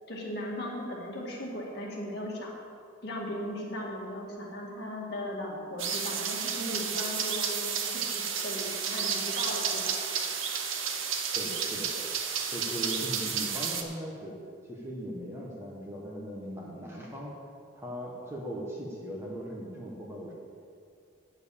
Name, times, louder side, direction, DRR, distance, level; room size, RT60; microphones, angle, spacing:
voice 1, 0.1-2.6 3.0-9.9, left 1 dB, 50° left, -3 dB, 2.2 m, -37 dB
sound 1, 5.8-13.8, right 6 dB, 75° right, 1.0 m, -31 dB
voice 2, 11.3-11.9 12.5-14.3 14.6-17.3 17.7-20.3, equal, 10° right, -4 dB, 1.5 m, -39 dB
9.1 x 8.0 x 7.2 m, 2.3 s
head